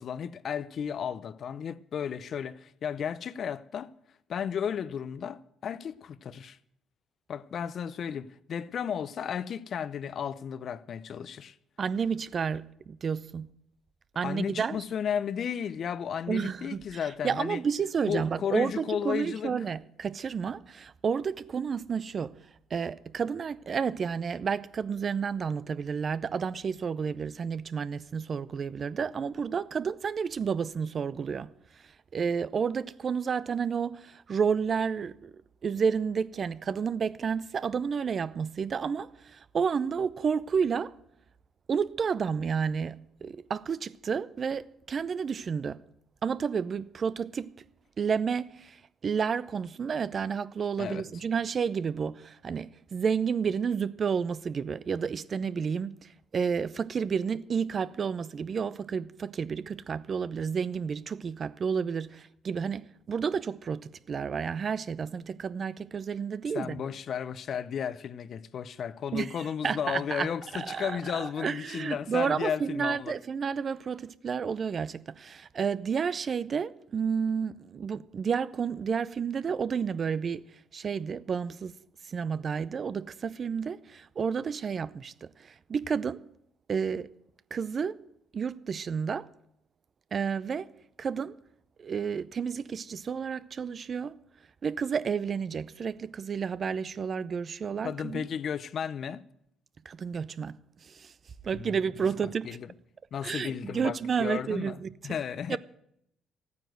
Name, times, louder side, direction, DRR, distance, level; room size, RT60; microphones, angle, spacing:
voice 1, 0.0-3.9 4.3-6.6 7.3-11.5 14.2-17.6 18.1-19.5 50.8-51.0 66.5-73.1 97.8-99.3 101.5-101.8 102.4-102.7 103.1-104.8 105.0-105.6, left 8 dB, 60° left, 0.6 m, -34 dB
voice 2, 11.8-13.5 14.2-14.8 16.3-22.4 22.7-35.3 35.6-40.9 41.7-45.8 46.2-47.5 48.0-66.8 69.1-70.3 70.5-81.8 82.0-86.2 86.7-87.1 87.5-88.0 88.3-89.3 90.1-90.7 91.0-91.4 91.8-94.2 94.6-98.3 99.8-101.1 101.4-102.5 103.2-105.2 105.5-105.6, right 6 dB, 50° right, 0.6 m, -31 dB
14.0 x 9.5 x 7.9 m
supercardioid pair, 60°, 0 cm